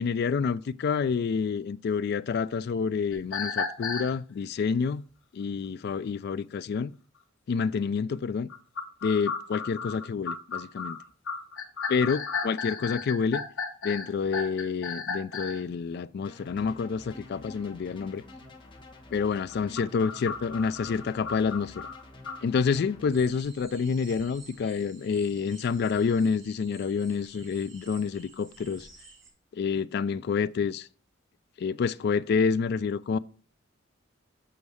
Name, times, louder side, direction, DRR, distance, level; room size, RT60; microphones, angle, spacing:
voice 1, 0.0-5.0 5.3-6.9 7.5-8.5 9.0-11.0 11.9-13.4 13.8-18.2 19.1-21.9 22.4-28.9 29.5-30.9 31.6-33.2, left 5 dB, 55° left, 0.3 m, -28 dB
sound 1, 3.1-4.1 8.5-15.6 19.5-22.4, left 5 dB, 75° left, 1.2 m, -34 dB
sound 2, 16.2-23.1, left 2 dB, 25° left, 1.1 m, -49 dB
sound 3, 23.1-29.3, right 3 dB, 65° right, 2.7 m, -52 dB
7.1 x 5.2 x 4.8 m
head